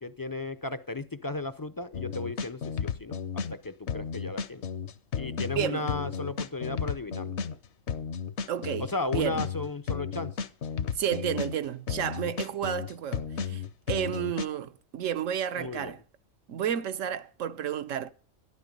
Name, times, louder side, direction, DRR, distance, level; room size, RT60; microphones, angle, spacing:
voice 1, 0.0-4.7 5.1-7.4 8.8-10.3 15.6-15.9, left 3 dB, 30° left, 0.3 m, -35 dB
sound 1, 1.9-3.6 3.9-7.6 7.9-11.6 11.9-14.5, left 6 dB, 65° left, 1.0 m, -33 dB
voice 2, 5.5-5.9 8.5-9.4 10.9-16.0 16.5-18.1, right 9 dB, 80° right, 1.2 m, -31 dB
13.0 x 12.0 x 5.3 m
omnidirectional pair, 1.3 m